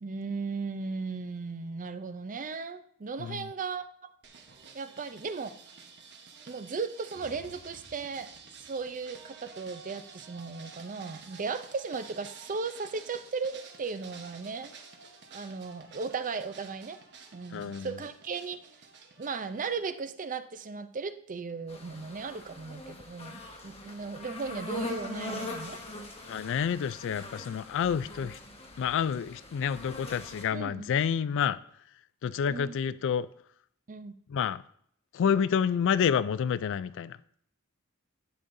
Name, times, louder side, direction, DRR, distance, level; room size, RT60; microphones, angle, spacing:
voice 1, 0.0-3.9 4.7-5.6 6.5-8.3 8.6-14.7 15.3-17.0 17.3-18.6 19.2-25.8 28.2-28.3 30.5-30.9 32.5-32.8 33.9-34.2, right 4 dB, 35° right, 0.5 m, -36 dB
sound 1, 4.2-19.7, right 5 dB, 55° right, 1.1 m, -51 dB
sound 2, 7.1-10.3, equal, 85° right, 1.5 m, -57 dB
voice 2, 17.5-18.0 26.3-28.4 28.8-31.6 32.2-33.3 34.3-34.6 35.1-37.2, left 7 dB, 60° left, 0.3 m, -29 dB
sound 3, 21.7-30.4, left 2 dB, 30° left, 1.2 m, -42 dB
11.0 x 8.5 x 2.6 m
head